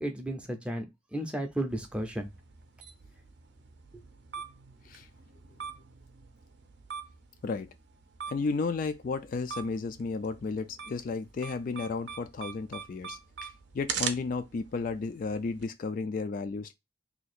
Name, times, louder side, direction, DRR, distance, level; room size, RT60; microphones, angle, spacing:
voice 1, 0.0-0.9 1.1-2.3, right 1 dB, 5° right, 0.5 m, -33 dB
sound 1, 1.7-15.6, right 7 dB, 60° right, 0.5 m, -43 dB
voice 2, 8.3-16.7, left 4 dB, 45° left, 0.3 m, -33 dB
2.7 x 2.4 x 4.1 m
head